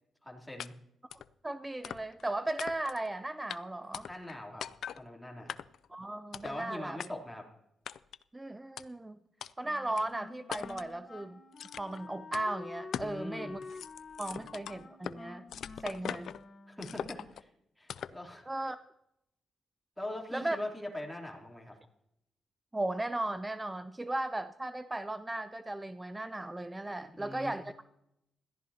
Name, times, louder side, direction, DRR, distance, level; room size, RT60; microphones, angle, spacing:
voice 1, 0.2-0.7 4.1-4.6 5.0-5.6 6.4-7.5 13.0-13.6 16.7-17.5 17.8-18.7 20.0-21.8 27.0-27.6, left 1 dB, 5° left, -2 dB, 3.1 m, -42 dB
sound 1, 0.6-0.7 1.1-1.3 1.8-2.3 2.6-3.1 3.5-3.6 3.9-4.3 4.6-5.0 5.5-5.9 6.3-6.6 7.0-7.1 7.9-8.2 8.8-8.9 9.4-9.5 10.0-10.1 10.5-10.9 11.6-12.0 12.3-12.5 12.9-13.2 13.5-15.2 15.5-16.4 16.8-17.4 17.9-18.2, left 9 dB, 70° left, 0.4 m, -41 dB
voice 2, 1.1-4.1 5.9-7.0 8.3-9.2 9.6-11.4 11.8-13.6 14.2-15.4 15.8-16.3 18.5-18.8 20.3-20.6 22.7-27.8, right 1 dB, 15° right, 11 dB, 0.5 m, -36 dB
Wind instrument woodwind instrument, 9.6-16.9, left 4 dB, 40° left, 1.3 m, -49 dB
21.0 x 14.0 x 2.8 m, 0.83 s
cardioid pair, 95°, 0 cm